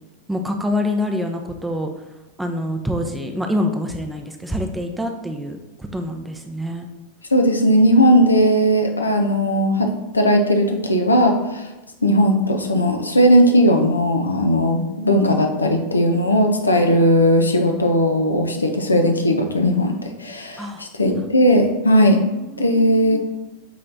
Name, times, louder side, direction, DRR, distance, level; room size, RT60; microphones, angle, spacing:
voice 1, 0.3-1.9 2.4-6.9 20.6-20.8 22.3-23.0, left 1 dB, 5° right, 4 dB, 0.7 m, -26 dB
voice 2, 7.3-11.7 12.0-22.2 22.6-23.2, equal, 80° left, 4 dB, 0.7 m, -17 dB
7.8 x 3.3 x 4.0 m, 1.0 s
figure-of-eight pair, 90°, 0 cm